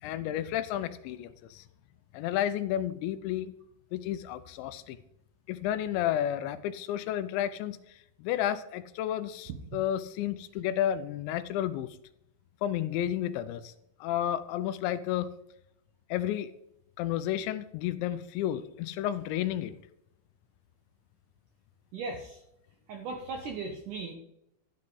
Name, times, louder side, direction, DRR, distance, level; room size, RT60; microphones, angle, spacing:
voice 1, 0.0-1.6 2.1-3.5 3.9-5.0 5.5-11.9 12.6-13.7 14.0-15.3 16.1-16.5 17.0-19.8, left 11 dB, 85° left, 12 dB, 3.0 m, -31 dB
voice 2, 21.9-22.4 22.9-24.1, right 4 dB, 70° right, 3 dB, 1.9 m, -37 dB
13.0 x 9.6 x 3.9 m, 0.81 s
omnidirectional pair, 5.1 m